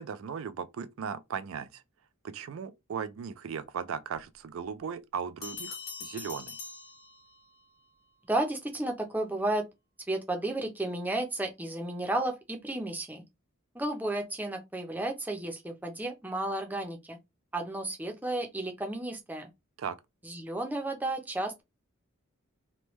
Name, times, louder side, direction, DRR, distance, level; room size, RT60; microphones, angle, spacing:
voice 1, 0.0-1.8 2.2-6.6 19.8-20.0, right 7 dB, 80° right, 0.4 m, -37 dB
Bell, 5.4-7.7, left 5 dB, 80° left, 1.0 m, -43 dB
voice 2, 8.2-9.7 10.1-13.2 13.7-17.2 17.5-19.5 20.2-21.6, right 1 dB, 10° right, 0.5 m, -33 dB
3.1 x 2.2 x 3.0 m
head